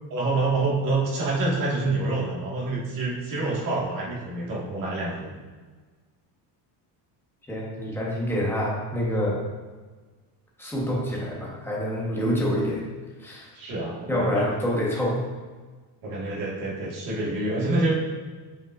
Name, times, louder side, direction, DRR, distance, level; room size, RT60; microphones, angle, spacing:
voice 1, 0.1-5.3 13.6-14.5 16.0-17.9, right 2 dB, 50° right, -4 dB, 1.8 m, -27 dB
voice 2, 7.5-9.4 10.6-12.9 13.2-13.5 14.1-15.2, equal, 5° left, -5 dB, 1.1 m, -26 dB
8.2 x 5.1 x 2.5 m, 1.4 s
cardioid pair, 170°, 44 cm